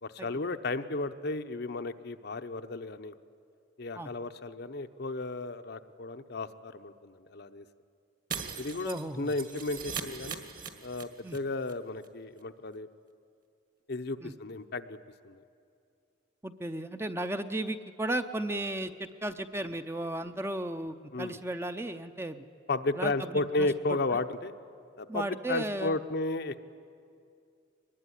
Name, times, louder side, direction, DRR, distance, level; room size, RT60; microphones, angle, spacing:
voice 1, 0.0-3.1 3.8-7.7 8.6-10.4 10.8-12.9 13.9-15.0 15.2-15.4 21.1-21.4 22.7-24.5 25.0-26.6, left 2 dB, 55° left, 8 dB, 0.8 m, -33 dB
Shatter, 8.3-11.4 11.6-11.7 12.0-12.1, right 6 dB, 45° right, 1.9 m, -40 dB
voice 2, 8.8-9.3 11.2-11.4 14.2-14.3 16.4-22.4 23.0-24.0 25.1-26.0, right 1 dB, 15° right, 8 dB, 0.7 m, -35 dB
23.0 x 20.5 x 10.0 m, 2.4 s
head